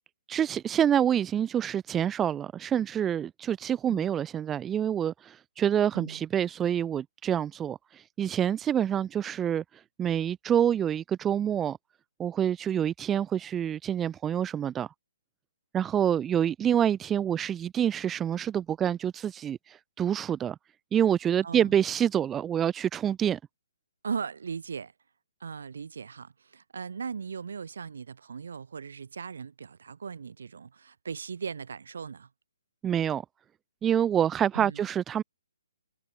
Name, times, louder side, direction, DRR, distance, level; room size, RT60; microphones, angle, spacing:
voice 1, 0.3-9.6 10.0-11.8 12.2-14.9 15.7-20.5 20.9-23.4 32.8-33.2 33.8-35.2, right 9 dB, 15° right, 1.5 m, -27 dB
voice 2, 21.4-21.7 24.0-24.9 25.4-32.3 34.5-34.8, right 6 dB, 60° right, 5.5 m, -38 dB
figure-of-eight pair, 135°, 0 cm